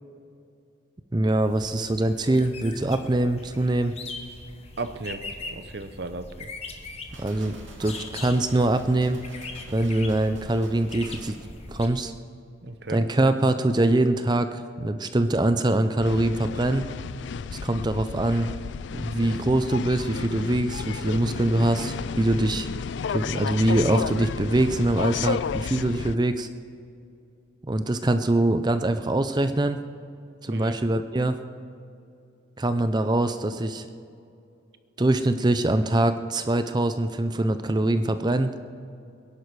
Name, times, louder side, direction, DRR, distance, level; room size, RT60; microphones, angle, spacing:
voice 1, 1.1-3.9 7.2-7.5 7.8-9.2 9.7-11.4 11.7-12.1 12.9-16.8 17.6-18.5 18.9-22.7 23.1-26.5 27.6-29.8 30.4-31.4 32.6-33.8 35.0-38.5, right 1 dB, 20° right, 10 dB, 0.5 m, -23 dB
sound 1, 1.4-11.9, left 3 dB, 30° left, 1.1 m, -41 dB
voice 2, 4.8-5.2 5.5-6.5 12.6-13.0 30.5-30.8, right 3 dB, 55° right, 9 dB, 0.8 m, -35 dB
sound 2, 7.1-11.4, right 2 dB, 75° right, 2.3 m, -45 dB
sound 3, 16.0-26.1, left 6 dB, 65° left, 0.3 m, -32 dB
21.5 x 11.0 x 4.7 m, 2.5 s
head